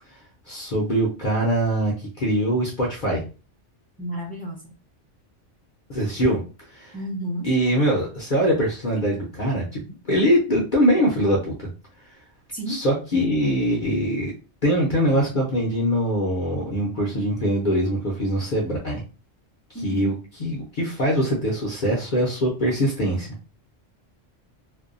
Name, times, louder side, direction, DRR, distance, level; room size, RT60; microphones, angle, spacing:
voice 1, 0.5-3.2 5.9-6.4 6.7-7.0 7.4-11.7 12.7-14.3 14.6-19.0 19.8-20.1 20.4-23.3, equal, 50° left, -3 dB, 0.6 m, -23 dB
voice 2, 4.0-4.7 6.9-7.5 12.5-12.8 19.7-20.1, right 1 dB, 15° left, -2 dB, 0.4 m, -31 dB
2.5 x 2.2 x 2.5 m, 0.34 s
omnidirectional pair, 1.2 m